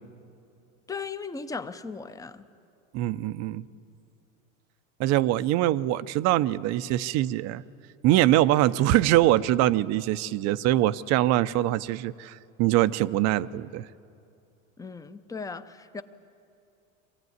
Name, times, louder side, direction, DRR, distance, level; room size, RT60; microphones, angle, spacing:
voice 1, 0.9-2.5 14.8-16.0, left 4 dB, 10° left, 0.6 m, -37 dB
voice 2, 2.9-3.6 5.0-7.6 8.0-13.9, right 14 dB, 40° right, 0.6 m, -23 dB
23.5 x 15.5 x 9.4 m
supercardioid pair, 120°, 42 cm